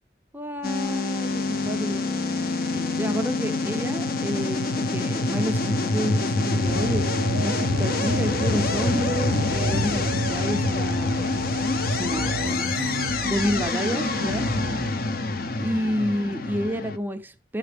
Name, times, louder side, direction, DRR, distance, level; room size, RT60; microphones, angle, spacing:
voice 1, 0.3-2.1 2.7-7.0 7.4-11.3 11.8-12.7 13.2-14.5 15.6-17.6, equal, 10° right, 0.5 m, -30 dB
sound 1, 0.6-17.0, left 2 dB, 55° left, 0.6 m, -26 dB
sound 2, 6.7-14.9, right 4 dB, 85° right, 0.4 m, -35 dB
11.0 x 5.8 x 3.3 m
head